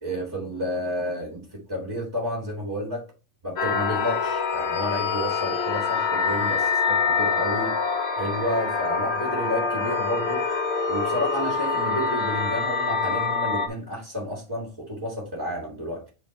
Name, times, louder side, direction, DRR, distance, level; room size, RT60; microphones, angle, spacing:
voice 1, 0.0-3.0 3.4-7.8 8.2-10.4 10.9-16.0, equal, 15° right, 0 dB, 1.8 m, -31 dB
sound 1, 3.6-13.7, left 5 dB, 55° left, 1.0 m, -25 dB
8.7 x 3.4 x 4.0 m, 0.32 s
omnidirectional pair, 1.4 m